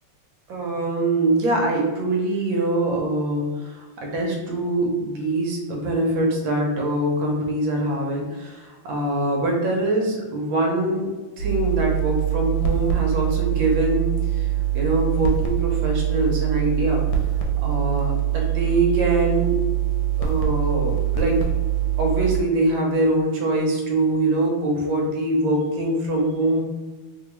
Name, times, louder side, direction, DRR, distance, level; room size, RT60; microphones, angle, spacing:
voice 1, 0.5-11.1 11.4-14.5 14.7-17.0 17.6-19.6 20.2-21.4 22.0-26.6, right 2 dB, 75° right, 0 dB, 1.4 m, -23 dB
sound 1, 11.4-22.4, right 12 dB, 80° left, 1.3 m, -23 dB
3.3 x 2.3 x 2.9 m, 1.3 s
omnidirectional pair, 2.2 m